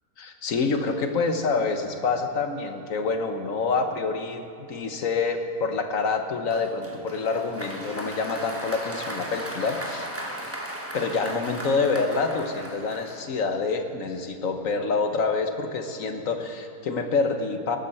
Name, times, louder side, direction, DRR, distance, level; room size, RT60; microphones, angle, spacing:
voice 1, 0.2-4.4 4.7-10.1 10.9-17.8, left 4 dB, 65° left, 6 dB, 1.4 m, -27 dB
Applause, 6.5-13.6, right 1 dB, 10° right, 1.1 m, -36 dB
21.0 x 12.0 x 4.3 m, 2.8 s
omnidirectional pair, 1.6 m